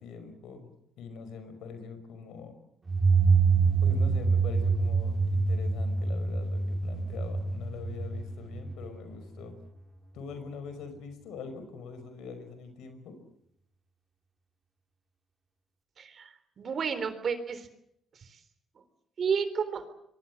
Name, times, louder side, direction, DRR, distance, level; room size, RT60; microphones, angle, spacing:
voice 1, 0.0-2.5 3.6-9.5 10.1-13.2, left 5 dB, 85° left, 9 dB, 5.4 m, -43 dB
sound 1, 2.9-9.4, right 4 dB, 30° right, 2.0 m, -26 dB
voice 2, 16.0-17.7 18.2-18.3 19.2-19.8, right 6 dB, 50° right, 12 dB, 3.6 m, -31 dB
26.0 x 23.0 x 7.6 m, 0.75 s
cardioid pair, 90°, 0 cm